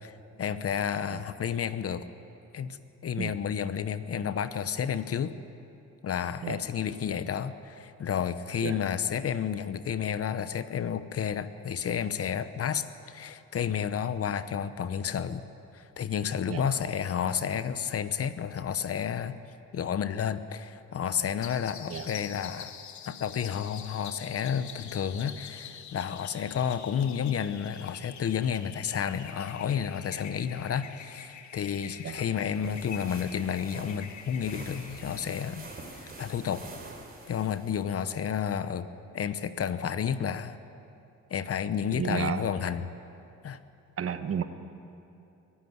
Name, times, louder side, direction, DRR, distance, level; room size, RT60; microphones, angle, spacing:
voice 1, 0.0-2.0 2.5-2.8 3.0-5.3 6.0-15.4 15.7-19.4 19.7-22.7 23.1-35.7 36.2-36.6 37.3-38.9 39.1-40.6 41.3-42.9 43.4-43.6, left 8 dB, 50° left, 13 dB, 0.9 m, -31 dB
sound 1, 21.4-36.6, left 8 dB, 70° left, 1.4 m, -46 dB
sound 2, 32.4-37.8, right 3 dB, 30° right, 3.6 m, -46 dB
voice 2, 41.9-42.5 44.0-44.4, right 8 dB, 50° right, 10 dB, 1.3 m, -32 dB
23.0 x 12.0 x 9.5 m, 2.8 s
cardioid pair, 90°, 30 cm